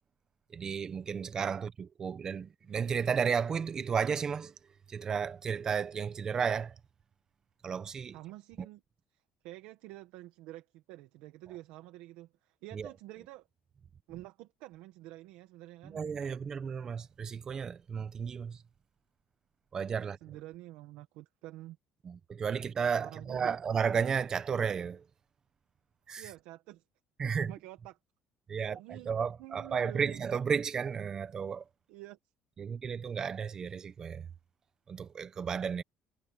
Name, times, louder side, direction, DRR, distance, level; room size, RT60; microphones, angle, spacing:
voice 1, 0.5-4.5 4.9-6.7 7.6-8.2 8.6-8.7 12.7-12.9 15.8-18.6 19.7-20.2 22.0-25.0 26.1-26.3 27.2-27.5 28.5-31.6 32.6-34.3 34.9-35.8, right 6 dB, 30° right, 1.1 m, -33 dB
voice 2, 8.1-8.8 9.1-13.5 14.1-16.0 20.0-21.8 23.0-23.6 26.2-26.8 27.4-28.0 28.7-30.3 31.9-32.2, right 17 dB, 90° right, 1.5 m, -48 dB
cardioid pair, 150°, 2 cm